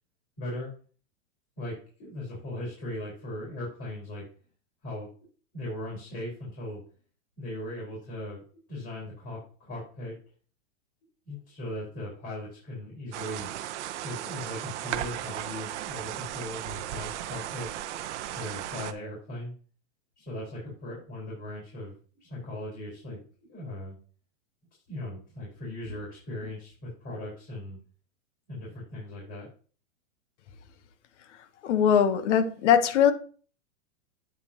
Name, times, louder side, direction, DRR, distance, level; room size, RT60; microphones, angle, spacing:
voice 1, 0.4-0.7 1.6-4.2 4.8-5.1 5.5-6.8 7.4-10.2 11.3-13.5 14.0-17.7 18.3-19.5 20.2-24.0 24.9-27.8 28.5-29.5, left 1 dB, 30° left, 4.3 m, -38 dB
sound 1, 13.1-18.9, right 12 dB, 60° right, 0.8 m, -36 dB
voice 2, 31.6-33.1, left 8 dB, 60° left, 1.2 m, -21 dB
8.9 x 7.3 x 2.9 m
supercardioid pair, 160°, 40 cm